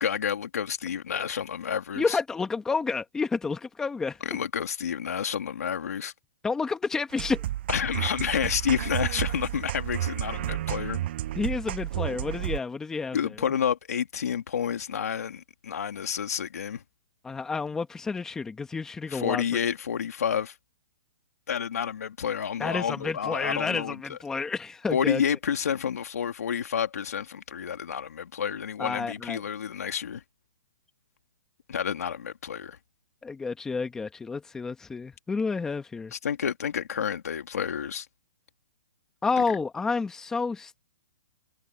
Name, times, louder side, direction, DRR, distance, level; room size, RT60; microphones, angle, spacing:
voice 1, 0.0-2.2 4.2-6.1 7.7-11.0 13.1-16.8 19.1-20.5 21.5-24.2 24.9-30.2 31.7-32.8 36.1-38.1 39.5-39.6, left 8 dB, 75° left, 2.5 m, -30 dB
voice 2, 2.0-4.2 6.4-7.4 11.4-13.2 17.2-19.4 22.6-25.2 28.8-29.4 33.2-36.1 39.2-40.8, left 4 dB, 5° left, 1.4 m, -30 dB
sound 1, 7.1-12.6, right 14 dB, 45° right, 6.8 m, -31 dB
hypercardioid pair, 160°, 8 cm